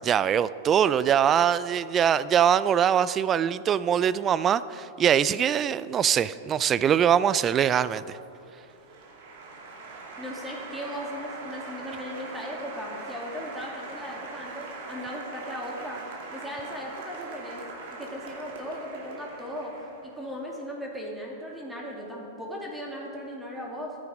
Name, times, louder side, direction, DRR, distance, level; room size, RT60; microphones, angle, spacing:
voice 1, 0.0-8.2, right 9 dB, 30° right, 17 dB, 0.4 m, -23 dB
Applause, 7.8-20.3, right 3 dB, 60° right, 2.6 m, -42 dB
voice 2, 10.2-16.0 16.3-17.6 17.9-19.8 20.0-24.0, equal, 5° right, -3 dB, 2.4 m, -37 dB
14.0 x 9.6 x 5.0 m, 2.6 s
hypercardioid pair, 105°, 0 cm